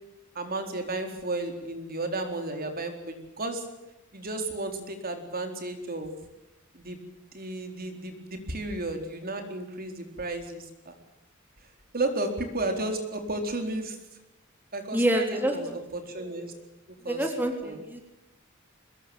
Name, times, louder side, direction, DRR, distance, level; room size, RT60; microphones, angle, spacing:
voice 1, 0.3-3.6 4.1-6.1 6.7-7.0 7.3-10.9 11.9-14.0 14.7-16.5 17.0-17.3 17.6-17.8, right 2 dB, 45° right, 5 dB, 4.3 m, -33 dB
voice 2, 14.9-15.5 17.1-18.0, right 1 dB, 10° right, 3 dB, 3.3 m, -27 dB
23.5 x 21.0 x 9.1 m, 0.95 s
head